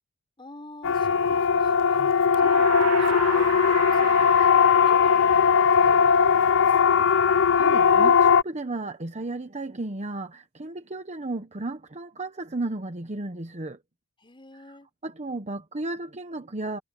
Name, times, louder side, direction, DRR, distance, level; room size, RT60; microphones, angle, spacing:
voice 1, 0.4-4.5 4.8-7.1 14.2-14.9, left 2 dB, 25° left, 5.5 m, -46 dB
Siren, 0.8-8.4, left 6 dB, 60° left, 0.6 m, -19 dB
sound 1, 2.2-6.1, right 6 dB, 85° right, 4.0 m, -34 dB
voice 2, 7.3-13.8 14.7-14.8 15.0-16.8, right 2 dB, 30° right, 1.1 m, -34 dB
head